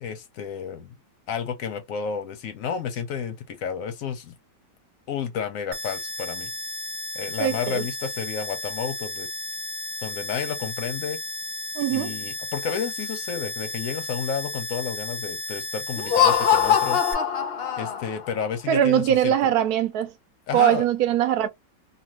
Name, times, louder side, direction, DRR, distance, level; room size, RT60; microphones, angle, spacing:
voice 1, 0.0-0.9 1.3-4.3 5.1-6.5 7.1-9.3 10.0-11.2 11.9-17.0 17.8-19.5 20.5-20.8, left 7 dB, 65° left, 0.9 m, -31 dB
sound 1, 5.7-17.1, left 1 dB, 40° right, 0.7 m, -34 dB
voice 2, 7.4-7.9 11.8-12.2 18.7-20.1 20.5-21.5, right 10 dB, 70° right, 1.0 m, -21 dB
Laughter, 16.0-18.3, left 8 dB, 90° left, 0.5 m, -22 dB
2.9 x 2.3 x 2.9 m
omnidirectional pair, 1.8 m